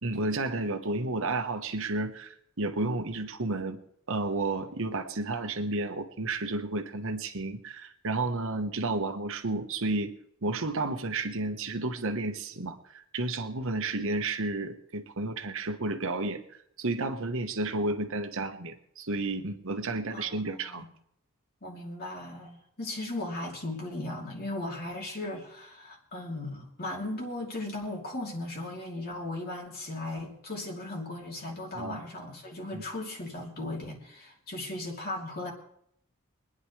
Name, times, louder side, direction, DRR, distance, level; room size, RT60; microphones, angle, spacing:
voice 1, 0.0-3.8 4.1-10.1 10.4-16.4 16.8-20.9 31.7-32.0 32.7-32.8, right 2 dB, 65° right, 7 dB, 1.2 m, -32 dB
voice 2, 20.1-20.9 21.6-35.5, left 2 dB, 45° left, -1 dB, 3.0 m, -37 dB
25.0 x 9.9 x 3.3 m, 0.70 s
head